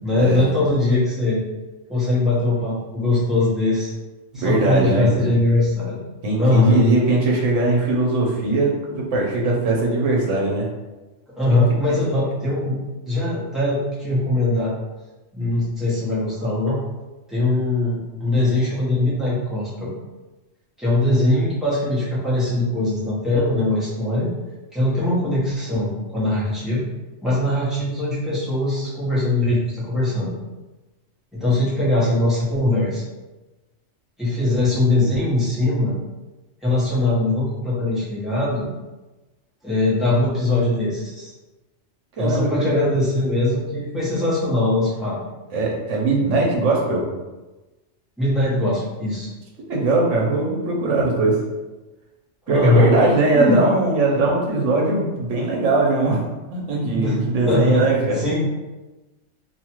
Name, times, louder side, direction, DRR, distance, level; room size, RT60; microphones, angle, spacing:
voice 1, 0.0-1.4 1.9-3.9 4.3-6.0 6.4-6.8 11.4-12.8 13.1-14.7 15.3-16.8 17.3-19.9 20.8-24.3 24.7-26.9 27.2-30.3 31.3-33.0 34.2-35.9 36.6-38.7 39.6-41.3 42.1-45.2 48.2-49.3 52.5-52.9 53.3-53.6 56.7-57.2 57.5-57.8 58.1-58.5, left 2 dB, ahead, -10 dB, 0.8 m, -21 dB
voice 2, 4.3-5.3 6.2-10.6 42.2-42.9 45.5-47.0 49.7-51.4 52.5-56.2 56.5-58.2, right 2 dB, 75° right, -2 dB, 1.0 m, -20 dB
2.7 x 2.3 x 3.0 m, 1.1 s
omnidirectional pair, 1.3 m